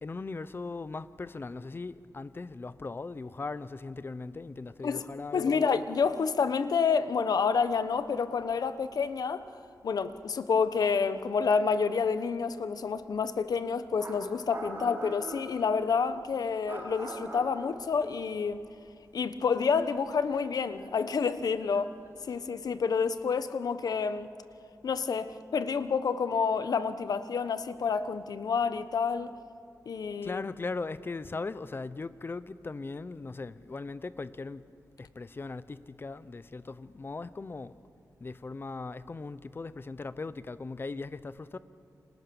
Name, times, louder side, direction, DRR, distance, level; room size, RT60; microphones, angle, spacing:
voice 1, 0.0-5.6 30.2-34.6 35.0-37.8 38.2-41.6, left 3 dB, 35° left, 0.8 m, -39 dB
voice 2, 5.3-9.4 9.8-18.6 19.1-21.9 22.2-24.3 24.8-29.3 29.8-30.4, left 5 dB, 75° left, 1.1 m, -29 dB
sound 1, 8.8-8.9 9.2-9.3 11.5-11.6 13.4-13.5 14.0-15.7 16.6-18.6 18.9-19.0 19.8-22.1, right 1 dB, 35° right, 7.4 m, -43 dB
30.0 x 25.5 x 7.1 m
wide cardioid pair, 115°, 7 cm